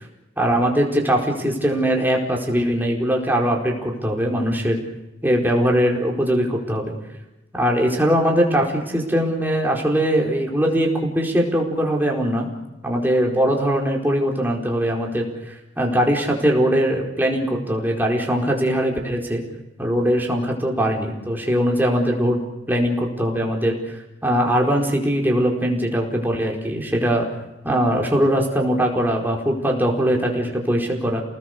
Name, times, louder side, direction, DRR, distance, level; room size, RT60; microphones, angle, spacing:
voice 1, 0.4-4.8 5.2-6.9 7.5-12.5 12.8-19.4 19.8-22.4 22.7-27.3 27.6-31.2, equal, 10° right, -1 dB, 4.7 m, -21 dB
30.0 x 19.5 x 6.8 m, 1.0 s
head